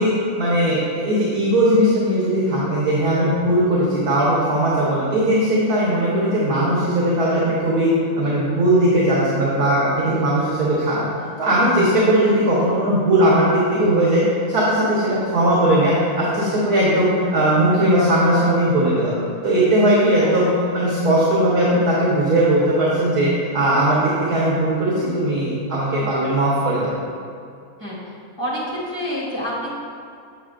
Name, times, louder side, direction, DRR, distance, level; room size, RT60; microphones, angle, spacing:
voice 1, 0.0-7.9 8.2-11.1 11.4-14.2 14.5-19.1 19.4-20.5 20.7-26.9, right 1 dB, 85° right, -7 dB, 1.8 m, -18 dB
voice 2, 4.2-4.6 8.2-8.5 20.4-20.5 25.9-26.2 27.8-28.0 28.4-29.7, equal, 15° left, -7 dB, 1.7 m, -29 dB
7.9 x 7.6 x 2.5 m, 2.4 s
omnidirectional pair, 1.6 m